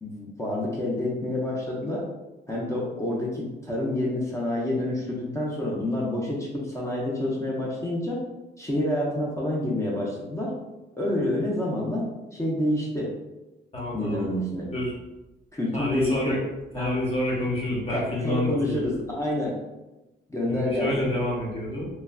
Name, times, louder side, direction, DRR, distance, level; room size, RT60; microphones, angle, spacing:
voice 1, 0.0-2.0 2.5-8.2 8.6-10.5 11.0-12.1 12.3-13.1 13.9-14.7 15.5-16.4 16.7-16.9 17.9-19.6 20.3-20.9, left 1 dB, 15° left, -4 dB, 0.7 m, -28 dB
voice 2, 13.7-14.2 14.7-14.9 15.7-16.4 16.7-18.8 20.5-21.9, left 1 dB, 30° left, -4 dB, 1.2 m, -28 dB
3.1 x 2.4 x 2.2 m, 1.0 s
cardioid pair, 90°, 20 cm